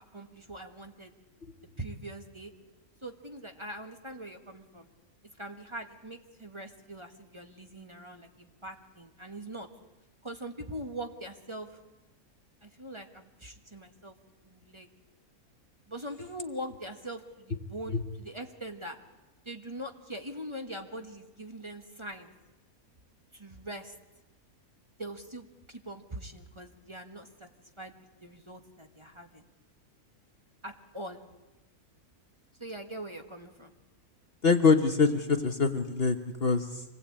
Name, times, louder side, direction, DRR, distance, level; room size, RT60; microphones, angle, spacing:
voice 1, 0.1-1.1 1.8-2.5 3.0-4.9 5.4-9.7 10.2-11.7 12.6-14.1 14.4-14.9 15.9-19.0 19.5-22.3 23.3-23.9 25.0-27.3 27.8-29.4 30.6-31.2 32.6-33.7, right 1 dB, 20° right, 4 dB, 1.6 m, -42 dB
voice 2, 34.4-36.8, left 4 dB, 45° left, 6 dB, 1.2 m, -24 dB
26.0 x 19.5 x 8.7 m, 1.1 s
omnidirectional pair, 1.5 m